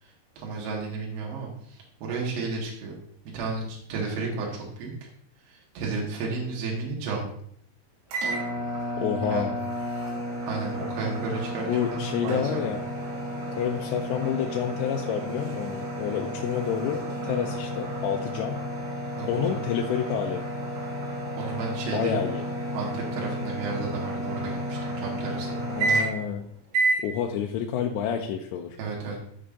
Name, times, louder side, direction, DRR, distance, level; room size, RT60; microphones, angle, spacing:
voice 1, 0.0-2.9 3.3-5.1 5.4-7.3 9.3-9.5 10.5-12.7 19.2-19.6 21.4-22.1 22.7-25.6 28.8-29.2, right 4 dB, 65° right, -3 dB, 3.9 m, -33 dB
sound 1, 8.1-26.3 26.7-27.1, right 1 dB, 85° right, 5.2 m, -31 dB
voice 2, 9.0-9.5 11.7-12.8 13.5-18.6 19.3-20.4 21.9-22.4 25.7-26.4 27.0-28.8, left 8 dB, 80° left, 1 dB, 2.7 m, -29 dB
16.0 x 5.7 x 2.7 m, 0.67 s
omnidirectional pair, 5.4 m